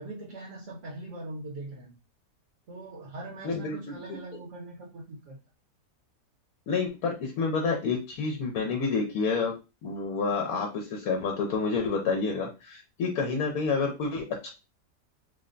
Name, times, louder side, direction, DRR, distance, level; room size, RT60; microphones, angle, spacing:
voice 1, 0.0-1.9 2.7-5.4, right 2 dB, 55° right, -2 dB, 1.1 m, -41 dB
voice 2, 3.4-4.2 6.7-9.5 9.8-14.5, left 4 dB, 75° left, 2 dB, 1.1 m, -29 dB
3.3 x 2.2 x 3.8 m, 0.28 s
omnidirectional pair, 1.6 m